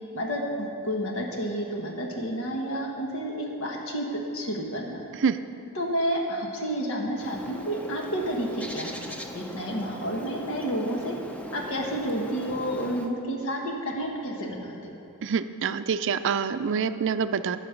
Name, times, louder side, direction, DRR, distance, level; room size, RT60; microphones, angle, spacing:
voice 1, 0.1-4.0 4.3-5.0 5.7-9.0 9.3-11.2 11.5-15.0, equal, 70° left, 0 dB, 1.6 m, -30 dB
Bird, 7.1-13.1, equal, 5° left, 0.7 m, -40 dB
voice 2, 15.2-17.6, right 6 dB, 60° right, 11 dB, 0.5 m, -26 dB
18.5 x 6.5 x 5.2 m, 2.7 s
head